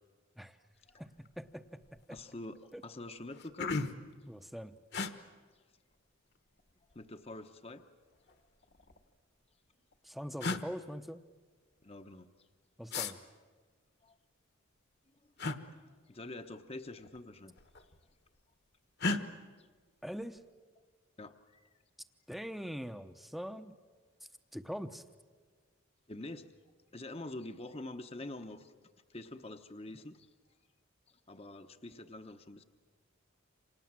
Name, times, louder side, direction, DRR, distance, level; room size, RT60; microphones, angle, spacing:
voice 1, 1.0-2.2 2.7-2.8 4.3-4.8 10.0-11.2 12.8-13.2 20.0-20.4 22.3-23.8 24.5-25.0, equal, ahead, 9 dB, 0.8 m, -43 dB
sound 1, 1.2-1.5 1.8-2.3 2.8-2.9 3.2-4.1 4.9-5.1 6.4-7.0 8.2-9.0 9.9-10.0 10.4-10.6 12.9-13.1 15.4-15.6 17.0-17.2 17.5-18.1 19.0-19.2, left 3 dB, 50° left, 1.4 m, -36 dB
voice 2, 2.1-3.7 6.9-7.9 11.8-12.5 14.0-14.2 15.4-17.5 19.6-19.7 21.2-21.7 26.1-26.5 26.9-28.7 29.1-30.5 31.1-32.6, left 2 dB, 30° left, 7 dB, 0.9 m, -46 dB
28.5 x 26.5 x 7.5 m, 1.5 s
head